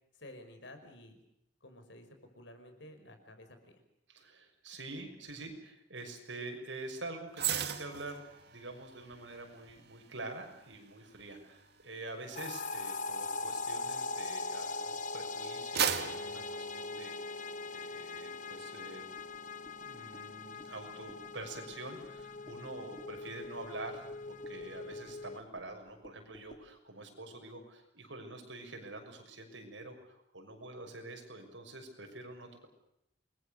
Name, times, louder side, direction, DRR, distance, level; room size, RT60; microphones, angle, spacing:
voice 1, 0.1-1.2 1.6-3.8, left 1 dB, 75° left, 7 dB, 5.2 m, -52 dB
voice 2, 4.1-17.1 17.7-19.0 19.8-32.7, right 2 dB, 85° right, 4 dB, 6.4 m, -46 dB
sound 1, 7.3-14.7 15.2-17.6 17.9-18.2, right 8 dB, 60° right, 1.9 m, -39 dB
sound 2, 12.4-25.4, left 3 dB, 45° left, 1.1 m, -41 dB
sound 3, 19.2-26.8, left 1 dB, 25° left, 4.1 m, -60 dB
29.0 x 22.0 x 6.6 m, 0.81 s
head